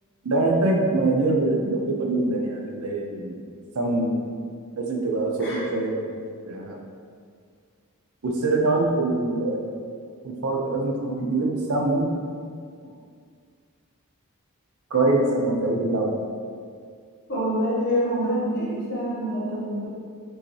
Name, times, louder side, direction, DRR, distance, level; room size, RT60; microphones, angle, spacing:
voice 1, 0.2-3.4 3.7-4.2 4.8-6.1 6.5-6.8 8.2-9.7 10.2-12.1 14.9-16.2, right 2 dB, 80° right, 0 dB, 0.6 m, -24 dB
voice 2, 17.3-19.9, equal, 55° left, -9 dB, 1.5 m, -26 dB
4.6 x 2.9 x 3.2 m, 2.1 s
head